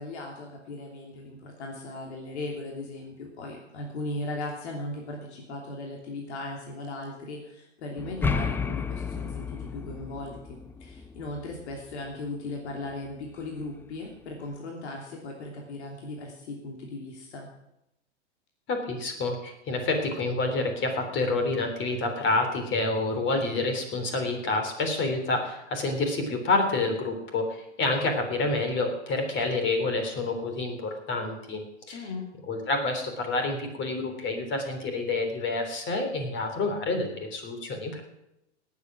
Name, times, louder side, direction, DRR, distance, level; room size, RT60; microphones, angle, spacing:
voice 1, 0.0-17.5 31.9-32.3, left 2 dB, 70° left, 0 dB, 3.1 m, -37 dB
sound 1, 8.0-11.9, left 5 dB, 5° left, 0.4 m, -32 dB
voice 2, 18.7-31.6 31.9-32.0 32.5-38.0, left 2 dB, 30° left, 5 dB, 3.6 m, -28 dB
18.5 x 8.4 x 6.2 m, 0.85 s
hypercardioid pair, 110°, 35 cm